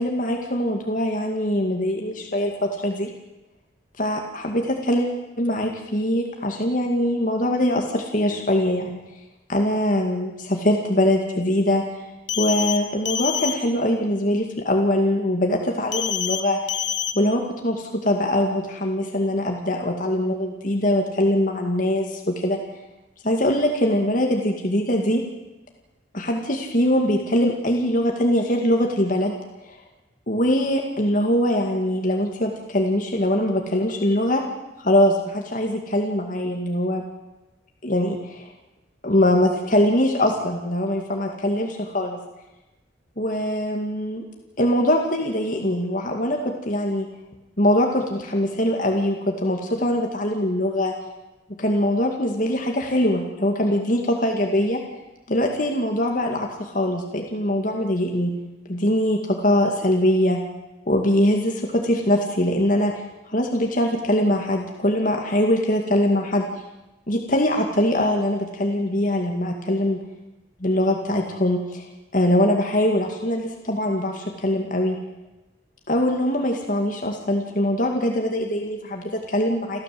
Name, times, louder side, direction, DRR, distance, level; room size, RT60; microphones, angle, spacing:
voice 1, 0.0-3.1 4.0-9.0 9.5-12.0 12.4-16.6 17.2-22.6 23.2-25.2 26.1-29.3 29.7-29.8 30.3-34.4 34.8-37.0 37.8-38.5 39.0-42.2 43.2-44.3 44.6-47.1 47.6-51.0 51.6-54.8 55.3-58.3 58.7-60.4 60.9-62.9 63.3-66.5 67.1-70.0 70.6-71.9 72.1-75.0 75.9-79.8, left 1 dB, 45° left, 2 dB, 2.3 m, -22 dB
sound 1, 12.3-12.8 13.1-13.5 15.9-16.4 16.7-17.1, left 9 dB, 65° left, 1.7 m, -26 dB
29.5 x 13.5 x 7.9 m, 1.0 s
head